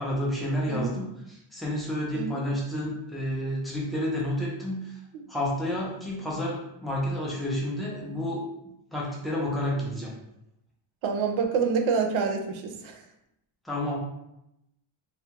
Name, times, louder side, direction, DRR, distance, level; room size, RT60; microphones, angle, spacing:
voice 1, 0.0-5.0 5.3-10.1 13.6-14.0, left 1 dB, ahead, -5 dB, 0.4 m, -30 dB
voice 2, 2.1-2.5 11.0-13.0, right 5 dB, 70° right, 3 dB, 0.6 m, -27 dB
2.3 x 2.2 x 2.8 m, 0.84 s
cardioid pair, 150°, 48 cm